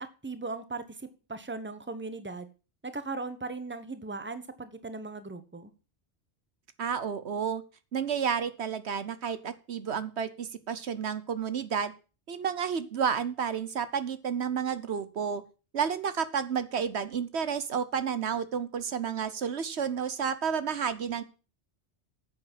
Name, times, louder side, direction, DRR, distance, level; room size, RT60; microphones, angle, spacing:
voice 1, 0.0-2.5 2.8-5.7, right 3 dB, 10° right, 11 dB, 1.1 m, -38 dB
voice 2, 6.8-7.6 7.9-11.9 12.3-15.4 15.7-21.2, right 7 dB, 75° right, 13 dB, 1.2 m, -31 dB
9.7 x 7.7 x 7.4 m, 0.34 s
omnidirectional pair, 1.1 m